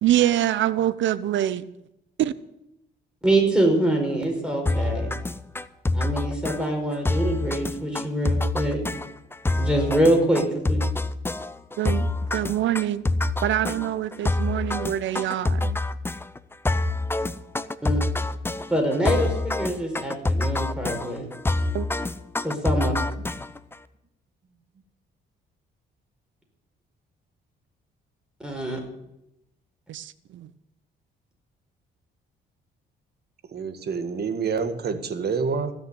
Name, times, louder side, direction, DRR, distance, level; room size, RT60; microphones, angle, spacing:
voice 1, 0.0-1.6 2.2-2.3 11.8-13.0 13.4-15.8 21.7-21.9 29.9-30.5, right 12 dB, 70° right, 16 dB, 0.8 m, -25 dB
voice 2, 3.2-5.1 5.9-8.8 9.6-10.8 17.8-18.0 18.7-21.3 22.4-22.9 28.4-28.8, right 1 dB, 5° right, 1 dB, 5.0 m, -24 dB
sound 1, 4.7-23.8, left 2 dB, 10° left, 0.6 m, -27 dB
voice 3, 33.5-35.7, right 5 dB, 55° right, 9 dB, 1.7 m, -27 dB
16.5 x 6.6 x 9.7 m, 0.85 s
cardioid pair, 90°, 20 cm